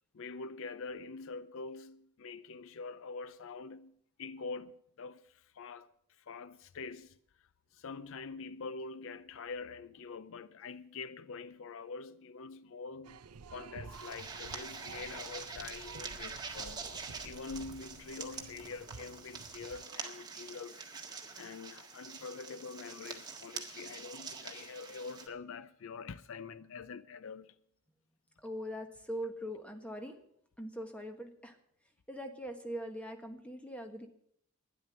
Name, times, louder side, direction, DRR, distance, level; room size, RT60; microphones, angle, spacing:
voice 1, 0.1-7.2 7.7-13.2 13.5-16.9 17.2-20.8 21.4-27.5, left 4 dB, 60° left, 0.5 m, -45 dB
sound 1, 13.0-19.8, right 4 dB, 90° right, 0.7 m, -52 dB
sound 2, 13.6-18.9, left 1 dB, 80° left, 1.7 m, -64 dB
sound 3, 13.9-25.3, right 5 dB, 20° right, 1.6 m, -45 dB
voice 2, 28.4-30.1 30.6-31.6 32.1-34.1, equal, 5° left, 1.5 m, -41 dB
12.0 x 10.5 x 7.9 m
head